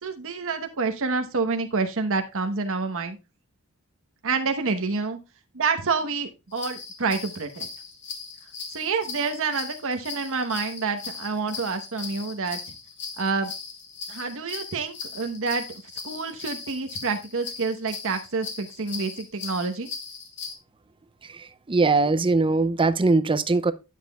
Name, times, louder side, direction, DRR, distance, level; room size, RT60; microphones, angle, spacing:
voice 1, 0.0-3.2 4.2-5.2 5.5-7.7 8.7-12.7 13.2-13.5 14.1-19.9, right 4 dB, 65° right, 1.0 m, -28 dB
sound 1, 6.5-20.6, left 5 dB, 55° left, 1.9 m, -39 dB
voice 2, 21.2-23.7, right 3 dB, 25° right, 0.5 m, -21 dB
10.0 x 7.3 x 2.2 m
head